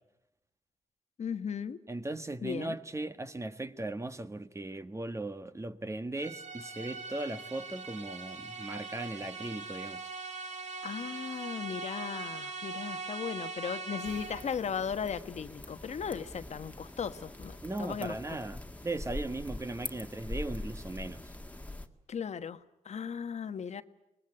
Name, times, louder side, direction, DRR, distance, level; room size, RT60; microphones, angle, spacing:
voice 1, 1.2-1.8 2.4-2.7 10.8-18.4 22.1-22.6 22.8-23.8, left 7 dB, 70° left, 1.2 m, -37 dB
voice 2, 1.9-10.1 17.6-21.3, right 2 dB, 25° right, 1.4 m, -38 dB
sound 1, 6.2-14.6, right 4 dB, 75° right, 2.9 m, -41 dB
sound 2, 14.0-21.9, left 2 dB, 10° left, 1.9 m, -43 dB
23.5 x 20.5 x 9.9 m
cardioid pair, 85°, 12 cm